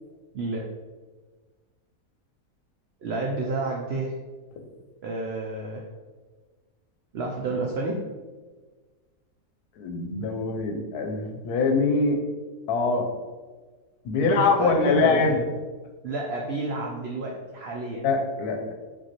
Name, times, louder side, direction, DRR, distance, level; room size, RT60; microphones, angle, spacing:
voice 1, 0.3-0.7 3.0-4.1 5.0-5.8 7.1-8.0 14.2-15.4 16.0-18.1, right 2 dB, 80° right, -1 dB, 0.5 m, -30 dB
voice 2, 9.8-12.2 12.7-13.1 14.0-15.4 18.0-18.7, left 4 dB, 85° left, 4 dB, 1.1 m, -23 dB
5.2 x 2.7 x 2.8 m, 1.4 s
omnidirectional pair, 1.6 m